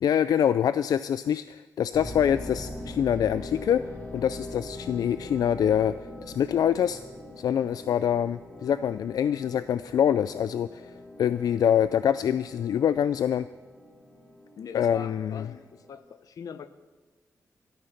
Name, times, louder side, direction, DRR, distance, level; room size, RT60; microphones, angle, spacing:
voice 1, 0.0-3.8 4.1-5.9 6.3-7.0 7.4-10.9 11.2-13.5 14.7-15.5, left 9 dB, 90° left, 14 dB, 0.3 m, -25 dB
sound 1, 1.9-15.9, left 1 dB, 30° left, 4.1 m, -42 dB
voice 2, 14.6-16.7, left 6 dB, 70° left, 12 dB, 0.8 m, -42 dB
13.5 x 13.0 x 5.8 m, 1.3 s
wide cardioid pair, 170°, 6 cm